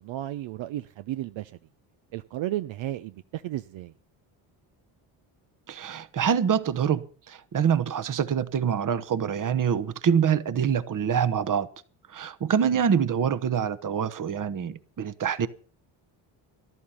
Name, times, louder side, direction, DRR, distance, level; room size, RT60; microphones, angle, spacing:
voice 1, 0.0-1.5 2.1-3.9, right 14 dB, 65° right, 0.7 m, -33 dB
voice 2, 5.7-11.7 12.1-15.5, right 7 dB, 40° right, 1.1 m, -25 dB
14.0 x 11.5 x 5.6 m
supercardioid pair, 80°, 50 cm